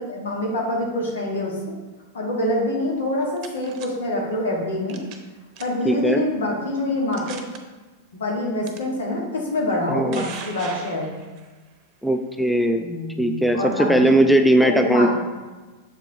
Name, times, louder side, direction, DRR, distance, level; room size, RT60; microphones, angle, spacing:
voice 1, 0.0-1.6 2.1-5.0 5.6-7.4 8.1-11.1 12.7-14.1 14.6-15.1, left 1 dB, 70° left, -2 dB, 1.8 m, -25 dB
sound 1, 3.0-3.9 4.9-5.3 5.6-5.9 6.5-6.6 7.1-7.6 8.7-8.8 9.7-11.5, right 6 dB, 45° right, 0.8 m, -38 dB
voice 2, 5.9-6.2 9.9-10.3 12.0-12.8 13.2-15.1, right 1 dB, ahead, 5 dB, 0.4 m, -19 dB
6.8 x 4.8 x 3.6 m, 1.3 s
figure-of-eight pair, 95°, 0 cm